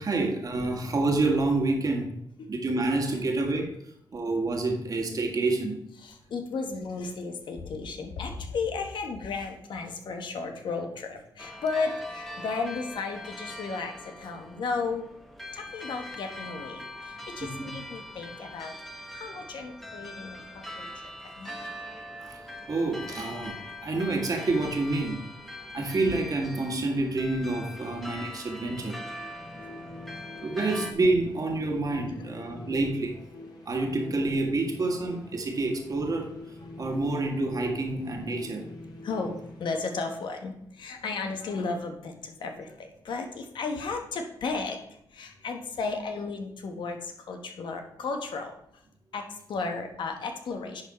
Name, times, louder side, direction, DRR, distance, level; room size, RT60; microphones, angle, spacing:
voice 1, 0.0-2.1 2.5-3.8 4.1-5.8 17.6-17.7 22.7-25.3 25.7-29.0 30.4-33.1 33.7-36.3 36.8-38.6, right 2 dB, 50° right, 2 dB, 1.8 m, -28 dB
voice 2, 6.0-15.1 15.5-21.7 29.5-29.7 32.2-32.5 36.6-36.8 39.0-48.8 49.1-50.8, left 4 dB, 75° left, 4 dB, 1.2 m, -34 dB
sound 1, 11.4-30.9, left 1 dB, ahead, 1.2 m, -42 dB
sound 2, 28.5-40.4, left 2 dB, 55° left, 2.3 m, -45 dB
10.0 x 4.0 x 4.3 m, 0.74 s
cardioid pair, 70°, 8 cm